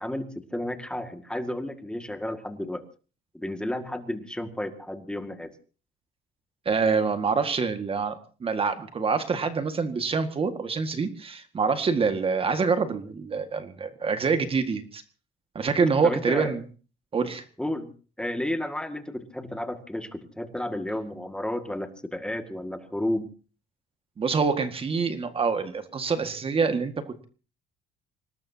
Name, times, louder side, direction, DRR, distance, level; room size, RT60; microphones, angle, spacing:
voice 1, 0.0-2.8 3.3-5.5 16.0-16.6 17.6-17.9 18.2-23.3, left 1 dB, 5° left, 7 dB, 2.0 m, -32 dB
voice 2, 6.7-15.0 15.6-16.6 17.1-17.4 24.2-27.2, right 5 dB, 35° right, 8 dB, 1.8 m, -26 dB
25.5 x 19.5 x 2.8 m, 0.38 s
cardioid pair, 110°, 17 cm